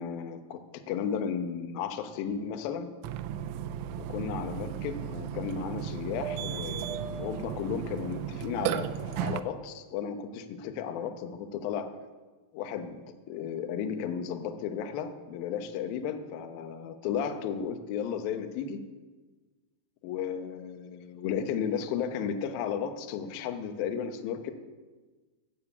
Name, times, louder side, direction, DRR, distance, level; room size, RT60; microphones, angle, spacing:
voice 1, 0.0-2.9 4.0-11.9 12.5-13.0 13.3-18.8 20.0-24.5, left 7 dB, 85° left, 6 dB, 2.1 m, -34 dB
Burping eructation, 3.0-9.4, right 10 dB, 85° right, 2.7 m, -35 dB
12.0 x 7.3 x 8.1 m, 1.3 s
omnidirectional pair, 5.6 m